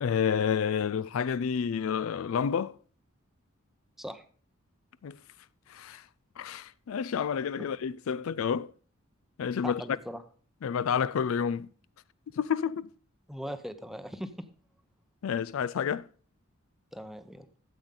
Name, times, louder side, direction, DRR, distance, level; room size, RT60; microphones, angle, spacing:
voice 1, 0.0-2.7 5.0-5.2 5.7-6.0 6.4-8.7 9.4-9.8 10.6-11.7 12.3-12.9 15.2-16.1, left 7 dB, 70° left, 0.4 m, -29 dB
voice 2, 9.6-10.2 13.3-14.5 16.9-17.5, equal, ahead, 0.7 m, -40 dB
13.0 x 7.9 x 3.8 m
head